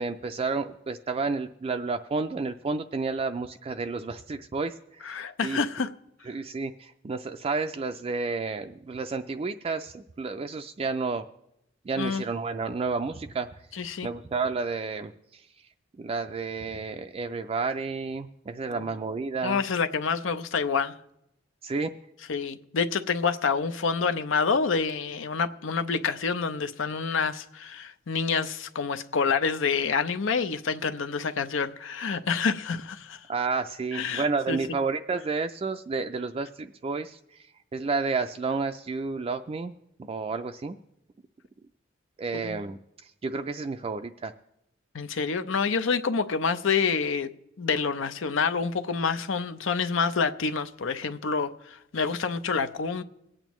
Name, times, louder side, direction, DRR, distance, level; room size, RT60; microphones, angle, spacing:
voice 1, 0.0-5.1 5.4-5.6 6.3-11.3 11.9-13.5 14.0-15.5 16.0-19.6 21.6-21.9 33.3-37.4 37.7-39.7 40.0-40.8 42.2-44.3, right 4 dB, 30° right, 0.3 m, -31 dB
voice 2, 5.0-5.9 12.0-12.2 13.7-14.1 18.7-18.8 19.4-20.9 22.3-33.2 33.9-34.6 42.3-42.6 44.9-47.3 47.6-53.0, left 5 dB, 85° left, 0.6 m, -27 dB
23.5 x 8.8 x 3.1 m
head